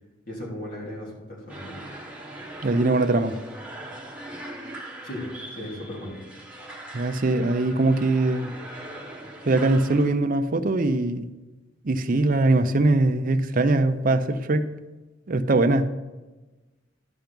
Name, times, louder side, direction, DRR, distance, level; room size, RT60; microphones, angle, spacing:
voice 1, 0.3-1.9 5.0-6.2, left 1 dB, 45° left, 3.0 m, -36 dB
sound 1, 1.5-10.1, right 1 dB, 5° right, 1.3 m, -41 dB
voice 2, 2.6-3.3 6.9-8.5 9.5-11.3 11.8-14.7 15.3-15.9, right 2 dB, 45° right, 0.6 m, -21 dB
11.5 x 6.0 x 5.2 m
head